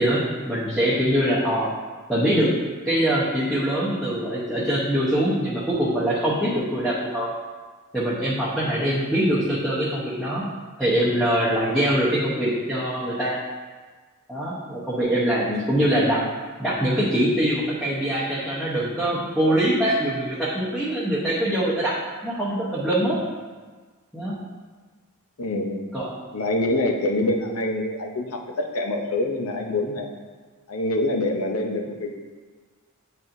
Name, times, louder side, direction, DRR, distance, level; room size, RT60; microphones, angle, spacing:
voice 1, 0.0-1.7 2.1-2.5 2.8-7.3 7.9-10.5 10.8-13.4 14.3-16.2 16.6-21.9 22.2-23.2 24.1-24.3 25.9-26.1, right 1 dB, 5° left, -9 dB, 0.9 m, -23 dB
voice 2, 25.4-25.8 26.3-30.1 30.7-32.1, left 2 dB, 80° left, 2 dB, 0.8 m, -25 dB
8.9 x 4.3 x 2.6 m, 1.4 s
head